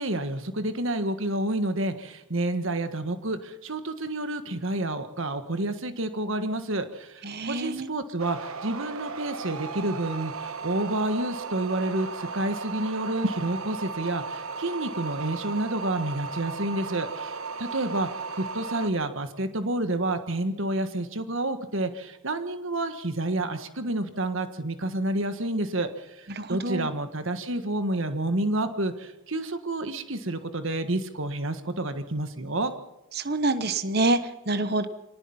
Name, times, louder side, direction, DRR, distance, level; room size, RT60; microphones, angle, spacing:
voice 1, 0.0-18.1 18.3-32.7, right 1 dB, 65° right, 9 dB, 1.5 m, -29 dB
voice 2, 7.2-7.9 26.3-26.9 33.1-34.9, right 2 dB, 45° right, 11 dB, 1.1 m, -27 dB
sound 1, 8.2-18.9, right 5 dB, 80° right, 1.2 m, -36 dB
25.0 x 18.5 x 5.7 m, 0.97 s
head